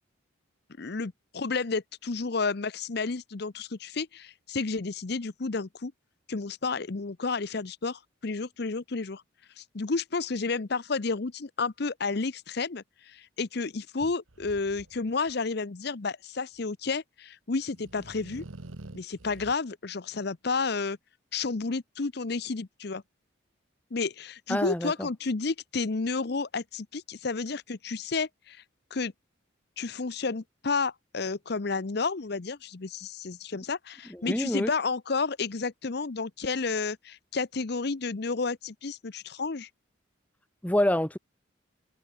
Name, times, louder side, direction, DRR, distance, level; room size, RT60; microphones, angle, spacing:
voice 1, 0.8-5.9 6.3-9.2 9.6-18.4 18.9-21.0 21.3-23.0 23.9-28.6 28.9-29.1 29.8-39.7, left 4 dB, 55° left, 0.7 m, -31 dB
sound 1, 14.0-15.3 17.5-19.5, right 2 dB, 85° right, 1.4 m, -46 dB
voice 2, 24.5-25.1 34.2-34.7 40.6-41.2, left 1 dB, 10° left, 0.9 m, -26 dB
open air
head